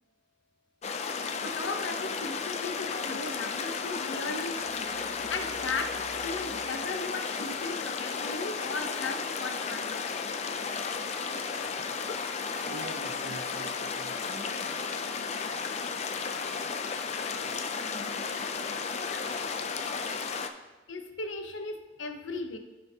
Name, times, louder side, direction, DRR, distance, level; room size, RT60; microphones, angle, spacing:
sound 1, 0.8-20.5, left 5 dB, 35° left, 0.3 m, -34 dB
voice 1, 1.4-10.0 20.9-22.6, left 3 dB, 80° left, 6 dB, 0.7 m, -37 dB
voice 2, 12.7-17.6 18.0-20.0, right 2 dB, 85° right, 6 dB, 0.7 m, -49 dB
13.0 x 4.4 x 2.8 m, 1.2 s
head